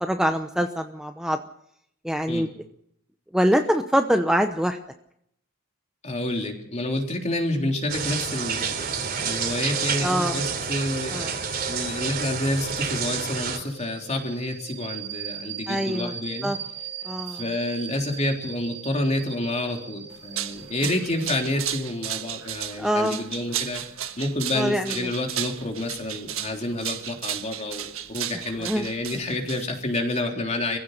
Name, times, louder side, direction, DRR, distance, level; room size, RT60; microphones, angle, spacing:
voice 1, 0.0-1.4 2.0-2.5 3.3-4.8 10.0-10.4 11.1-11.3 15.7-16.1 16.4-16.6 17.0-17.4 22.8-23.2 24.5-25.1 28.6-28.9, equal, 5° right, 5 dB, 0.9 m, -24 dB
voice 2, 6.0-16.5 17.3-23.8 24.2-30.8, left 1 dB, 30° left, 2 dB, 3.5 m, -29 dB
sound 1, 7.8-24.0, right 6 dB, 25° right, 2.5 m, -41 dB
sound 2, 7.9-13.6, right 6 dB, 45° right, 3.1 m, -29 dB
sound 3, 20.1-30.0, right 11 dB, 70° right, 1.5 m, -34 dB
25.5 x 16.0 x 6.7 m, 0.74 s
head